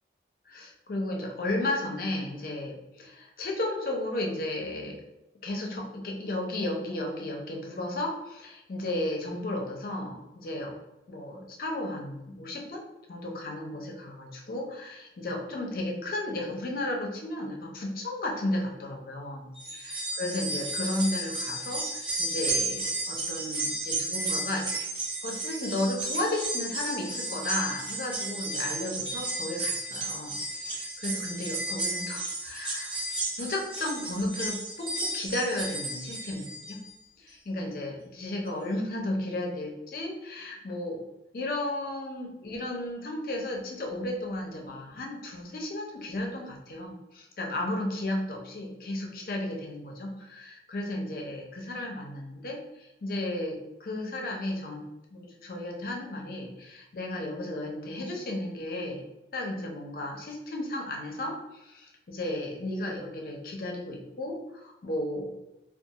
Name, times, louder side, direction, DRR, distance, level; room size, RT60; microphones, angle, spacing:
voice 1, 0.5-5.0 5.4-10.8 11.1-12.8 13.1-24.7 25.2-33.0 33.4-36.8 37.5-41.0 41.3-54.8 55.1-59.0 59.3-65.3, left 1 dB, 55° left, 0 dB, 0.5 m, -34 dB
sound 1, 19.6-36.9 37.3-37.4 38.5-38.6, right 2 dB, 30° right, 0.6 m, -33 dB
2.3 x 2.3 x 2.8 m, 0.95 s
head